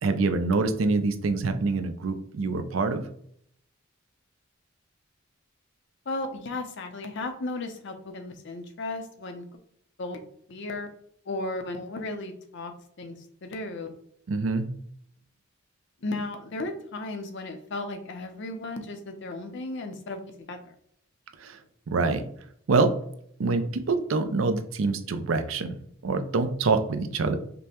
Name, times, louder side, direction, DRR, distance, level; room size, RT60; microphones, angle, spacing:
voice 1, 0.0-3.0 14.3-14.7 21.4-21.6 21.9-22.3 22.7-22.9 23.4-25.8 26.0-27.4, right 3 dB, 70° right, 9 dB, 0.5 m, -25 dB
voice 2, 6.1-9.4 10.0-10.2 10.5-10.9 11.3-12.7 13.0-13.9 16.0-20.7, left 2 dB, 60° left, 6 dB, 0.6 m, -35 dB
5.2 x 2.1 x 2.9 m, 0.68 s
head